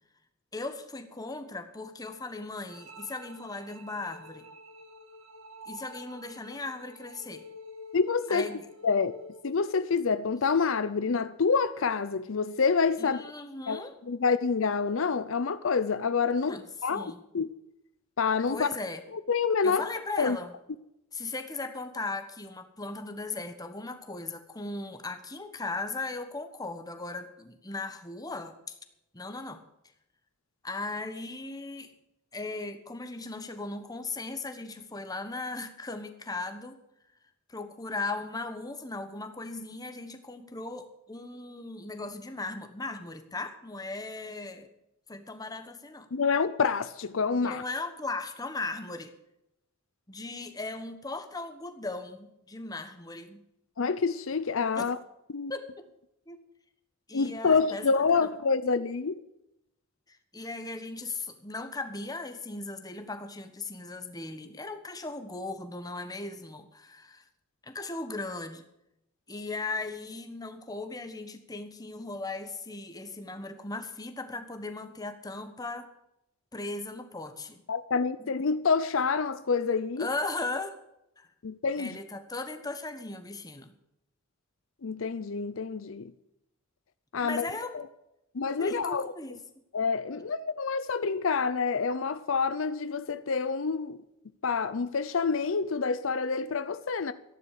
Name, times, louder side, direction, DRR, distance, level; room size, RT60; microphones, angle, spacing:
voice 1, 0.5-4.5 5.7-7.5 8.3-8.6 13.0-13.9 16.5-17.2 18.5-19.0 19.6-20.5 21.1-28.8 29.1-29.6 30.6-31.9 32.3-36.8 37.5-44.7 45.1-46.1 47.4-49.1 50.1-53.4 54.7-54.9 55.5-55.8 56.3-56.4 57.1-58.3 60.1-67.2 67.6-68.6 69.3-75.9 76.5-77.6 78.2-78.3 80.0-80.8 81.2-81.3 81.8-83.7 87.2-87.8 88.5-89.4, left 3 dB, 20° left, 1.3 m, -37 dB
sound 1, 2.7-9.7, left 1 dB, 75° right, 2.3 m, -48 dB
voice 2, 7.9-8.5 8.8-9.1 9.4-13.2 13.7-13.8 14.1-16.5 16.8-17.5 18.2-18.7 19.1-19.9 20.2-20.4 46.1-47.6 53.8-55.0 55.3-55.5 57.1-59.2 77.7-80.1 81.4-82.0 84.8-86.1 87.1-87.5 88.3-89.1 89.7-94.0 94.4-97.1, left 5 dB, 70° left, 0.6 m, -27 dB
13.5 x 11.0 x 6.6 m
head